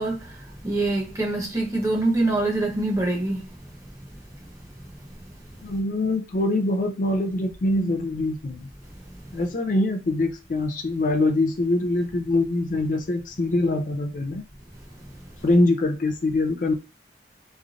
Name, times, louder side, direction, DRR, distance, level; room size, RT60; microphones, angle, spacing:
voice 1, 0.0-3.5, right 2 dB, 15° right, 0.7 m, -25 dB
voice 2, 5.6-8.7 9.3-14.4 15.4-16.7, left 2 dB, 45° left, 0.4 m, -24 dB
3.1 x 2.5 x 2.4 m
head